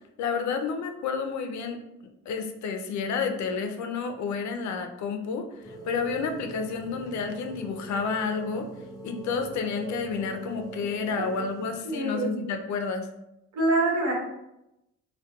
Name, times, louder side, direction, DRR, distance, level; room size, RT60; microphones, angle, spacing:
voice 1, 0.2-1.8 2.3-8.7 9.0-13.1, left 5 dB, 70° left, 6 dB, 0.4 m, -30 dB
sound 1, 5.6-11.8, right 3 dB, 15° left, 0.5 m, -41 dB
voice 2, 11.8-12.4 13.5-14.1, right 2 dB, 70° right, -3 dB, 1.0 m, -25 dB
2.2 x 2.2 x 2.8 m, 0.87 s
cardioid pair, 90°, 30 cm